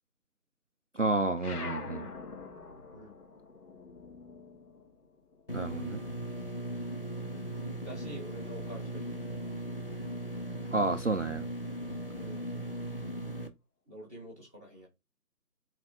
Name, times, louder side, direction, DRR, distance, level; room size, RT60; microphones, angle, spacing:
voice 1, 1.0-2.1 5.5-6.0 10.7-11.4, right 2 dB, 50° right, 0.5 m, -30 dB
sound 1, 1.4-6.3 6.6-8.0, left 4 dB, 65° left, 2.9 m, -45 dB
voice 2, 2.9-3.2 7.8-9.4 12.1-12.5 13.9-14.9, equal, 10° left, 1.8 m, -47 dB
sound 2, 5.5-13.5, right 1 dB, 35° left, 0.7 m, -38 dB
6.2 x 4.4 x 4.2 m
figure-of-eight pair, 165°, 49 cm